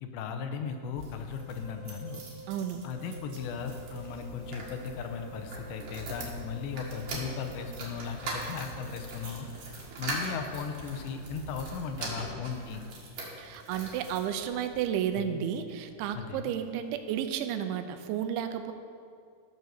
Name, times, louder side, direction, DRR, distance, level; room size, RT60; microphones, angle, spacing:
voice 1, 0.0-2.2 2.8-9.5 10.0-12.8 15.2-15.4 16.1-16.5, left 6 dB, 80° left, 6 dB, 2.9 m, -37 dB
sound 1, 0.8-14.8 15.4-16.3 16.6-16.7 16.9-17.0, right 2 dB, 55° right, 2.5 m, -42 dB
Wind instrument woodwind instrument, 1.3-9.1, right 1 dB, 30° left, 3.9 m, -50 dB
voice 2, 2.5-2.8 13.4-18.7, right 9 dB, 85° right, 8 dB, 3.0 m, -32 dB
sound 2, 3.3-12.0, right 1 dB, 30° right, 2.3 m, -49 dB
13.5 x 6.2 x 6.8 m, 2.2 s
omnidirectional pair, 5.3 m